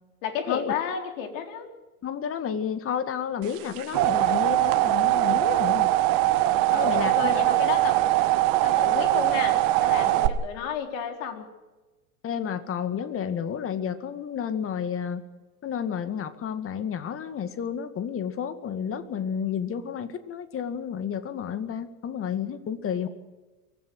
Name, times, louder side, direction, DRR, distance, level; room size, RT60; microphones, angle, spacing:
voice 1, 0.2-1.7 6.7-8.0 8.6-11.5, left 7 dB, 60° left, 5 dB, 4.3 m, -32 dB
voice 2, 2.0-5.9 6.7-7.3 12.2-15.3 15.6-23.1, left 8 dB, 30° left, 11 dB, 2.1 m, -31 dB
sound 1, 3.6-10.3, right 15 dB, 50° right, 1.7 m, -22 dB
24.0 x 15.5 x 8.0 m, 1.2 s
hypercardioid pair, 100°, 44 cm